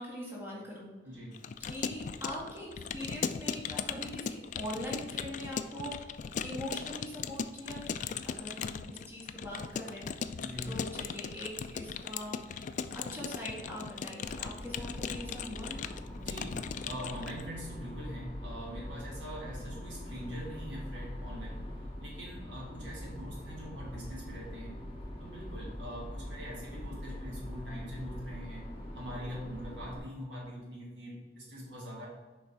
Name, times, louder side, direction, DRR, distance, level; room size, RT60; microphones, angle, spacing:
voice 1, 0.0-0.9 1.6-6.1 6.4-8.0 8.2-10.4 10.6-15.8, equal, 15° right, -6 dB, 2.0 m, -42 dB
voice 2, 1.0-1.5 10.4-10.7 16.2-24.8 25.2-32.1, equal, 80° right, -4 dB, 2.2 m, -43 dB
Keyboard (musical) / Computer keyboard, 1.3-17.4, left 6 dB, 45° left, 0.3 m, -38 dB
sound 1, 14.2-30.0, left 1 dB, 30° left, 2.1 m, -43 dB
7.2 x 5.2 x 3.5 m, 1.3 s
head